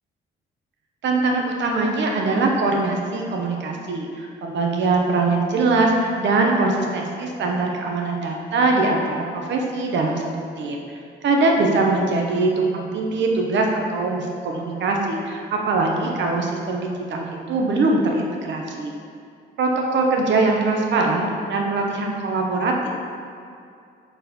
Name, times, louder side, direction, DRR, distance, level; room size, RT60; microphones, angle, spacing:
voice 1, 1.0-10.2 10.6-10.8 11.2-18.9 19.6-22.9, right 3 dB, 65° right, 1 dB, 1.0 m, -22 dB
4.5 x 4.4 x 5.2 m, 2.4 s
cardioid pair, 90°, 20 cm